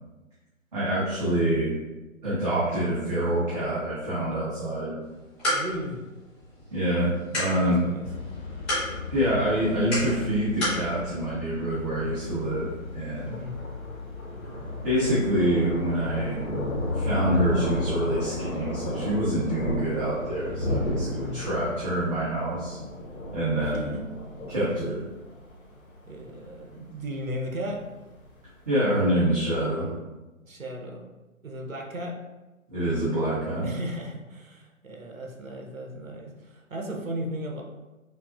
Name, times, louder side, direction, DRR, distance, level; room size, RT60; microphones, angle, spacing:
voice 1, 0.7-1.8 2.2-5.0 6.7-7.9 9.1-13.4 14.8-16.4 16.9-22.8 23.3-24.0 24.5-25.0 28.7-29.9 32.7-33.7, right 1 dB, 30° right, -11 dB, 1.0 m, -26 dB
sound 1, 5.0-10.9, equal, ahead, 0.9 m, -33 dB
voice 2, 5.5-6.1 7.6-8.1 13.3-13.6 21.1-21.4 23.6-24.0 26.1-27.8 30.4-31.0 31.4-32.1 33.6-37.6, equal, 80° right, 0 dB, 0.9 m, -36 dB
sound 2, 8.0-21.7, left 3 dB, 35° left, 0.7 m, -37 dB
Thunder, 11.7-28.6, left 1 dB, 85° left, 1.1 m, -35 dB
5.5 x 2.0 x 2.5 m, 1.1 s
figure-of-eight pair, 150°, 41 cm